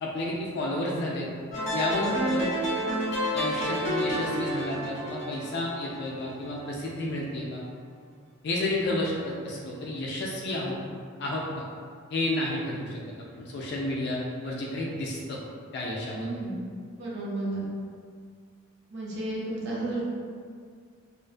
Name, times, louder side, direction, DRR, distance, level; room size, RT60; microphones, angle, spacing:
voice 1, 0.0-1.3 1.7-2.5 3.3-7.6 8.4-10.8 11.2-11.4 12.1-13.0 13.3-15.4 15.7-16.3, left 1 dB, 55° left, -3 dB, 0.3 m, -31 dB
sound 1, 1.5-6.6, equal, 35° left, 0.9 m, -30 dB
voice 2, 16.1-16.6 17.0-17.7 18.9-20.0, right 2 dB, 60° right, -6 dB, 0.6 m, -32 dB
2.5 x 2.2 x 2.4 m, 2.1 s
head